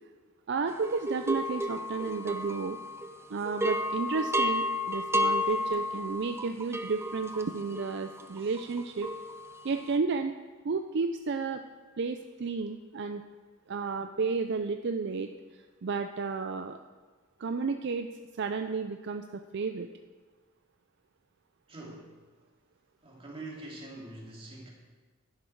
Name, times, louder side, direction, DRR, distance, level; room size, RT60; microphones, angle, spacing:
voice 1, 0.5-2.8 3.3-9.1 9.6-10.4 10.6-11.6 12.0-13.2 13.7-16.8 17.4-18.1 18.4-19.9, right 4 dB, 60° right, 7 dB, 0.5 m, -32 dB
sound 1, 0.8-3.2 3.4-9.8, equal, 15° right, 0.6 m, -32 dB
voice 2, 21.7-22.1 23.0-24.7, right 2 dB, 30° right, -3 dB, 2.6 m, -45 dB
11.5 x 10.5 x 4.6 m, 1.4 s
head